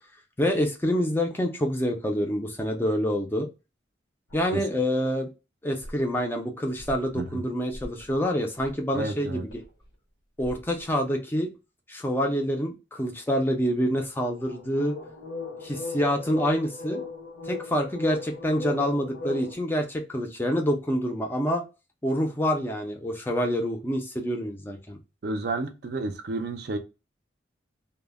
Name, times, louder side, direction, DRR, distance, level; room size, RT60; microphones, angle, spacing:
voice 1, 0.4-3.5 4.3-5.3 5.6-9.6 10.4-11.5 11.9-15.0 15.6-17.0 17.4-21.6 22.0-25.0, equal, 10° left, 0.3 m, -27 dB
sound 1, 4.3-4.5 5.8-5.9 6.8-7.3 7.7-8.2 8.6-8.8 9.5-9.6 10.4-10.7 14.4-19.5, left 3 dB, 90° left, 0.8 m, -38 dB
voice 2, 7.1-7.5 8.9-9.5 25.2-26.8, right 2 dB, 55° right, 0.4 m, -31 dB
2.1 x 2.0 x 3.3 m
head